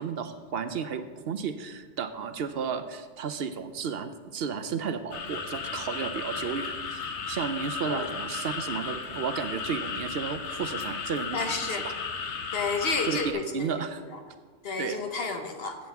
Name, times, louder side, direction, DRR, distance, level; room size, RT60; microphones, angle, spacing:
voice 1, 0.0-11.8 13.0-13.2 13.5-14.0 14.8-15.0, right 6 dB, 65° right, 9 dB, 0.8 m, -33 dB
sound 1, 5.1-13.3, left 5 dB, 85° left, 1.2 m, -35 dB
voice 2, 11.3-11.9 12.5-13.7 14.6-15.8, left 4 dB, 60° left, 5 dB, 1.3 m, -31 dB
15.5 x 7.6 x 3.5 m, 1.4 s
omnidirectional pair, 1.1 m